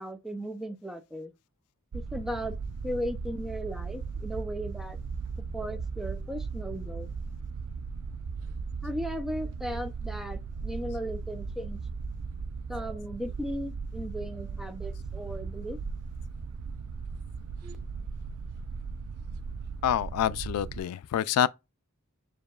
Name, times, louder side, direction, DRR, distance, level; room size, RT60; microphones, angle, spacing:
voice 1, 0.0-1.3 1.9-2.6 2.8-5.0 5.5-7.1 8.8-11.8 12.7-15.8 17.6-17.8, equal, ahead, 0.5 m, -36 dB
sound 1, 1.9-20.8, right 5 dB, 85° right, 0.4 m, -37 dB
voice 2, 19.8-21.5, left 10 dB, 85° left, 0.3 m, -27 dB
6.6 x 2.9 x 2.3 m
head